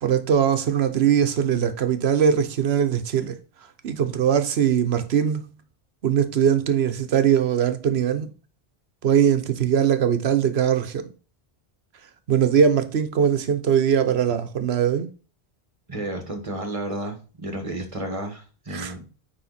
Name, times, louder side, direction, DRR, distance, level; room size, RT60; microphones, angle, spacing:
voice 1, 0.0-3.4 3.8-5.4 6.0-8.3 9.0-11.1 12.3-15.1 18.7-18.9, right 8 dB, 90° right, 1.1 m, -21 dB
voice 2, 15.9-19.0, right 1 dB, 30° right, 1.8 m, -32 dB
9.3 x 3.6 x 4.1 m
omnidirectional pair, 1.1 m